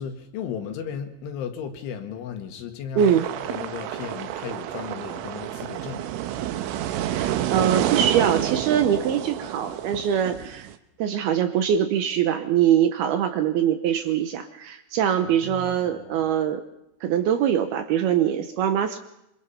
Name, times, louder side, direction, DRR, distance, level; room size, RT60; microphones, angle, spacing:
voice 1, 0.0-6.1 15.2-16.2, left 7 dB, 80° left, 6 dB, 4.2 m, -35 dB
sound 1, 3.0-10.7, right 12 dB, 90° right, 3.5 m, -29 dB
voice 2, 7.0-10.7 11.0-16.6 17.0-19.0, right 9 dB, 75° right, 8 dB, 2.4 m, -23 dB
25.5 x 24.5 x 5.7 m, 0.85 s
omnidirectional pair, 5.4 m